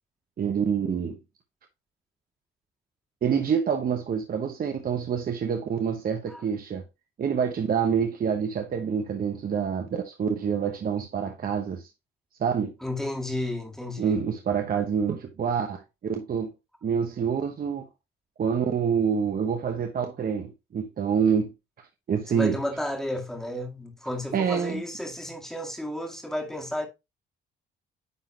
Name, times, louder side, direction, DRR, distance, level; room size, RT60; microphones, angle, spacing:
voice 1, 0.4-1.2 3.2-6.8 7.2-11.9 12.4-12.7 14.0-15.8 16.1-16.5 16.8-17.9 18.4-21.5 22.1-22.6 24.3-24.8, right 7 dB, 50° right, 1.0 m, -27 dB
voice 2, 12.8-14.2 22.3-26.9, left 1 dB, ahead, 1.9 m, -32 dB
9.5 x 3.8 x 2.8 m
cardioid pair, 90°, 20 cm